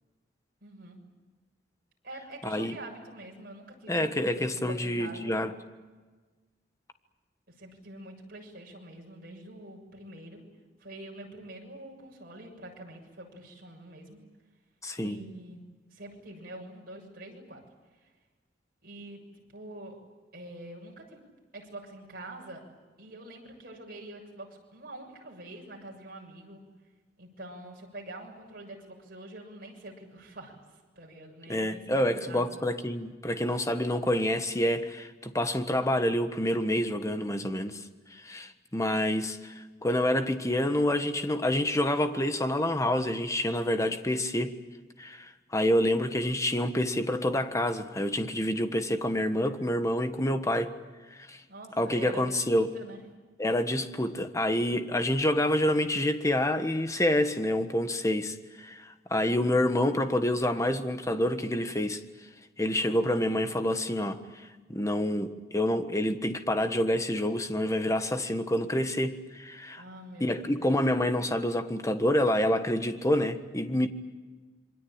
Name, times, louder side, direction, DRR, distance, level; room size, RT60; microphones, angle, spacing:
voice 1, 0.6-1.0 2.0-5.4 7.6-10.4 10.8-14.2 15.0-15.6 15.9-17.6 17.9-18.1 18.8-20.0 20.3-21.2 21.5-22.6 23.0-26.6 27.2-30.5 31.0-32.4 51.5-53.1 69.8-70.7, right 1 dB, 55° right, 0 dB, 7.1 m, -45 dB
voice 2, 2.4-2.7 3.9-5.5 14.8-15.2 31.5-37.8 38.1-44.6 45.0-50.7 51.1-51.4 51.8-52.7 53.4-62.0 62.6-69.8 70.2-73.9, left 1 dB, 15° left, 8 dB, 1.4 m, -28 dB
27.0 x 23.5 x 8.9 m, 1.3 s
head